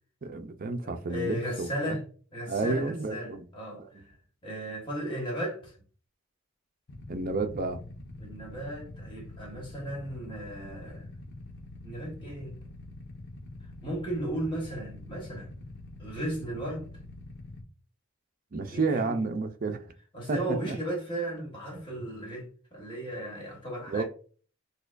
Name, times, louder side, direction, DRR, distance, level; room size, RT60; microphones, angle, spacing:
voice 1, 0.2-2.0 2.5-3.5 3.8-3.9 7.1-7.8 18.5-19.8 20.3-20.8 23.9-24.0, right 3 dB, 45° right, 0.5 m, -31 dB
voice 2, 0.8-2.0 2.3-4.1 4.4-5.7 8.2-11.1 11.8-12.5 13.8-15.5 16.0-16.9 18.7-19.3 20.1-24.0, right 1 dB, 25° left, 1.3 m, -35 dB
Motorcycle / Idling, 6.9-17.6, left 2 dB, 55° left, 0.8 m, -45 dB
6.6 x 2.3 x 2.5 m
head